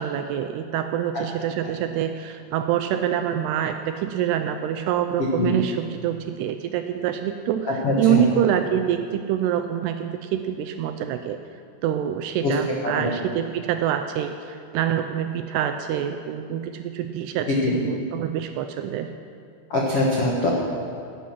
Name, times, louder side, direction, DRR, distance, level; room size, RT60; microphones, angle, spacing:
voice 1, 0.0-11.4 11.8-19.1, right 10 dB, 80° right, 7 dB, 2.5 m, -26 dB
voice 2, 5.2-5.5 7.6-8.2 12.4-12.5 12.8-13.1 17.5-17.7 19.7-20.5, left 2 dB, 70° left, -2 dB, 1.3 m, -23 dB
18.0 x 10.0 x 6.2 m, 2.3 s
omnidirectional pair, 5.1 m